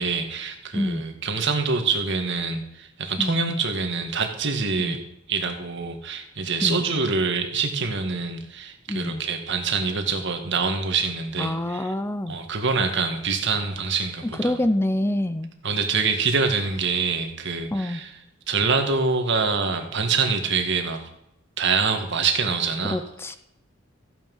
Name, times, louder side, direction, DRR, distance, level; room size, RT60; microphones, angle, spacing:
voice 1, 0.0-5.0 5.3-11.9 12.3-14.6 15.6-18.1 18.5-21.1 21.6-23.0, right 4 dB, 65° right, 5 dB, 1.9 m, -25 dB
voice 2, 8.9-9.2 11.4-12.4 14.4-15.5 17.7-18.0 22.9-23.4, left 1 dB, 10° left, 11 dB, 0.5 m, -26 dB
14.5 x 9.2 x 5.5 m, 0.83 s
head